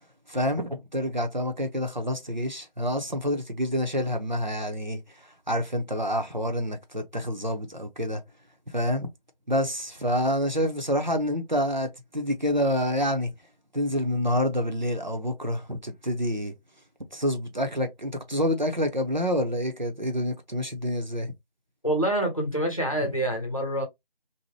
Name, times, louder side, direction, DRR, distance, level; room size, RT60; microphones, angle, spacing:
voice 1, 0.3-8.2 8.7-9.1 9.5-13.3 13.7-16.5 17.1-21.3, equal, 50° right, 0.6 m, -27 dB
voice 2, 21.8-23.8, right 1 dB, 35° left, 0.8 m, -26 dB
2.6 x 2.0 x 3.1 m
figure-of-eight pair, 175°, 29 cm